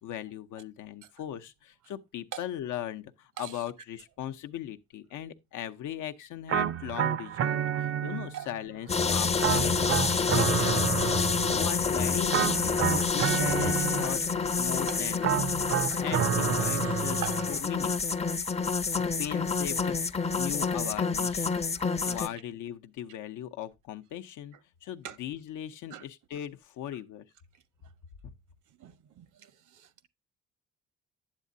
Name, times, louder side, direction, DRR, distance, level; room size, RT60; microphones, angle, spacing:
voice 1, 0.0-11.2 11.5-14.2 14.6-18.0 18.9-21.5 22.1-24.6 24.8-27.2, left 11 dB, 85° left, 0.7 m, -39 dB
sound 1, 6.5-8.6 9.4-11.8 12.3-14.4 15.2-17.6, right 10 dB, 50° right, 0.4 m, -30 dB
sound 2, 8.9-22.3, left 5 dB, 20° left, 0.5 m, -28 dB
voice 2, 21.8-22.1 25.0-25.1 25.9-26.0 28.8-28.9 29.2-29.3, right 10 dB, 75° right, 0.8 m, -39 dB
9.0 x 7.4 x 2.6 m
cardioid pair, 90°, 30 cm